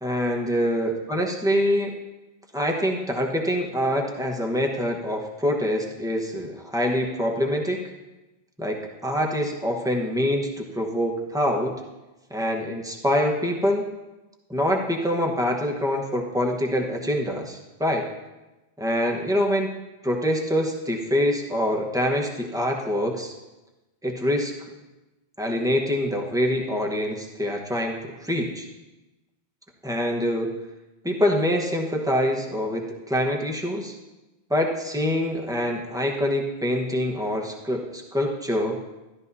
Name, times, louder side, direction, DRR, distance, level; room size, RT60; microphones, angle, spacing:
voice 1, 0.0-1.9 2.5-7.8 8.6-11.7 12.3-13.9 14.5-18.1 18.8-19.7 20.0-23.3 24.0-24.5 25.4-28.7 29.8-30.6 31.0-33.9 34.5-38.8, equal, 5° right, 0 dB, 1.1 m, -25 dB
13.5 x 12.0 x 2.8 m, 1.1 s
omnidirectional pair, 1.1 m